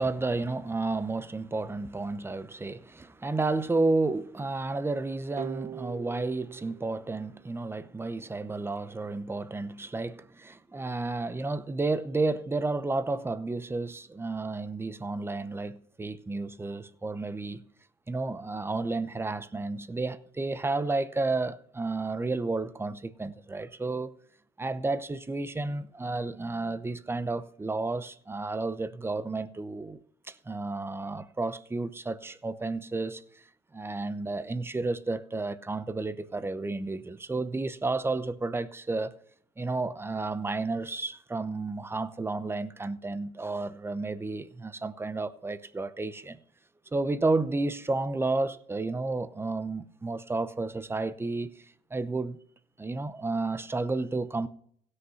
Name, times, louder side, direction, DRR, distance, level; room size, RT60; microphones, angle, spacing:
voice 1, 0.0-17.6 18.1-24.1 24.6-30.0 30.3-33.2 33.7-39.1 39.6-46.4 46.9-51.6 51.9-52.4 52.8-54.5, right 3 dB, 15° right, 0.8 m, -31 dB
sound 1, 5.4-8.2, right 10 dB, 40° right, 0.4 m, -43 dB
16.5 x 6.6 x 5.6 m
cardioid pair, 110°, 17 cm